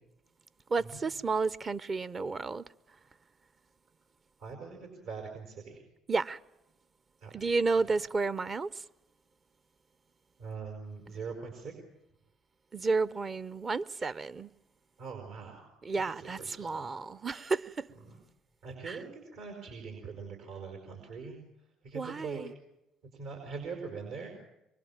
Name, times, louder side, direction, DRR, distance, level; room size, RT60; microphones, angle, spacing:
voice 1, 0.7-2.6 6.1-6.4 7.3-8.8 12.7-14.5 15.8-17.9 18.9-19.0 21.9-22.5, right 4 dB, 35° right, 0.8 m, -31 dB
voice 2, 4.4-5.8 7.2-7.6 10.4-11.7 15.0-16.9 18.1-18.2 18.6-21.4 21.8-22.4 23.1-24.3, right 5 dB, 75° right, 5.4 m, -42 dB
24.0 x 24.0 x 7.3 m
hypercardioid pair, 60°, 0 cm